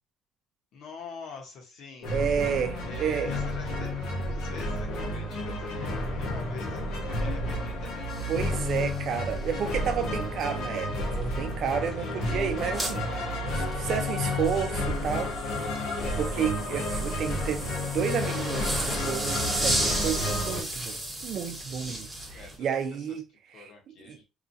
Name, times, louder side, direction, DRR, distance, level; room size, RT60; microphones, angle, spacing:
voice 1, 0.7-2.1 2.8-8.1 12.0-12.3 21.7-23.2 23.5-24.2, left 4 dB, 70° left, 1.1 m, -46 dB
sound 1, 2.0-20.6, left 1 dB, 90° left, 1.0 m, -31 dB
voice 2, 2.1-3.3 8.3-13.2 13.5-15.3 16.2-23.2 23.5-23.7 24.0-24.2, right 7 dB, 60° right, 0.6 m, -31 dB
sound 2, 8.1-22.6, right 1 dB, 5° right, 1.2 m, -36 dB
2.9 x 2.3 x 2.6 m
cardioid pair, 110°, 0 cm